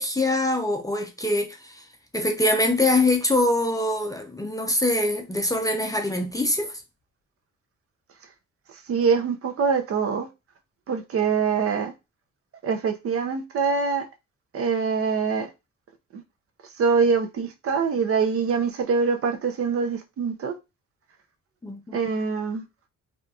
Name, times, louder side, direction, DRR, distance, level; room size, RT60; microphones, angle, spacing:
voice 1, 0.0-1.9 2.1-6.8 21.6-22.0, left 1 dB, 10° left, 0.4 m, -24 dB
voice 2, 8.7-10.3 10.9-11.9 12.6-14.1 14.5-15.5 16.1-16.2 16.8-20.5 21.9-22.6, right 5 dB, 50° right, 0.5 m, -24 dB
2.7 x 2.4 x 2.3 m
cardioid pair, 90°, 30 cm